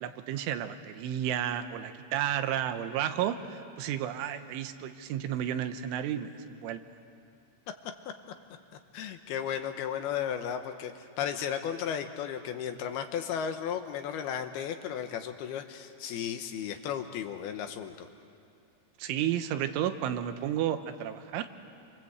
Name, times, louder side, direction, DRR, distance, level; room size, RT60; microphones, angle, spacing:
voice 1, 0.0-6.8 19.0-21.5, right 10 dB, 85° right, 9 dB, 3.5 m, -32 dB
voice 2, 8.9-18.1, left 8 dB, 75° left, 7 dB, 2.5 m, -34 dB
28.0 x 26.0 x 8.1 m, 2.5 s
omnidirectional pair, 5.5 m